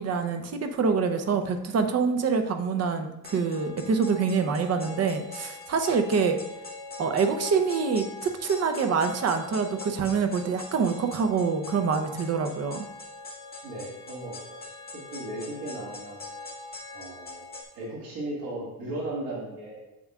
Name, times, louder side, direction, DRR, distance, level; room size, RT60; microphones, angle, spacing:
voice 1, 0.0-6.4 7.0-12.9, right 5 dB, 45° right, 7 dB, 0.8 m, -26 dB
sound 1, 3.2-17.6, left 3 dB, 25° left, 1.8 m, -42 dB
voice 2, 13.6-14.4 14.9-16.2 16.9-17.4 17.7-19.8, right 1 dB, 90° right, -5 dB, 2.1 m, -36 dB
7.8 x 7.3 x 2.4 m, 0.94 s
cardioid pair, 130°, 34 cm